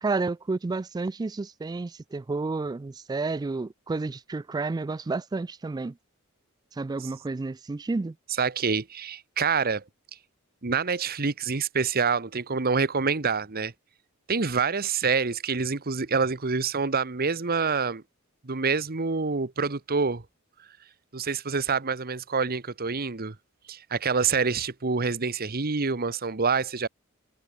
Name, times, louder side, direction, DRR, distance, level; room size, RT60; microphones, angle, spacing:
voice 1, 0.0-6.0 6.7-8.2, right 3 dB, 20° right, 0.3 m, -30 dB
voice 2, 8.4-9.8 10.6-13.7 14.3-18.0 18.4-20.2 21.1-23.3 23.7-26.9, right 5 dB, 45° right, 1.1 m, -26 dB
head